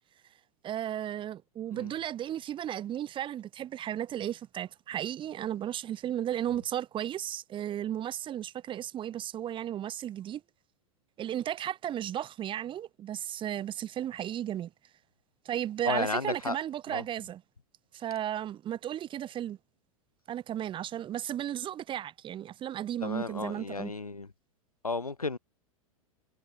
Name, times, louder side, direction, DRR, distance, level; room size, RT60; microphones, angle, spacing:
voice 1, 0.6-10.4 11.2-14.7 15.4-17.4 17.9-19.6 20.3-23.9, right 11 dB, 25° right, 1.7 m, -34 dB
voice 2, 15.8-16.6 16.9-17.0 23.0-24.3 24.8-25.4, left 3 dB, 85° left, 2.4 m, -33 dB
figure-of-eight pair, 95°, 18 cm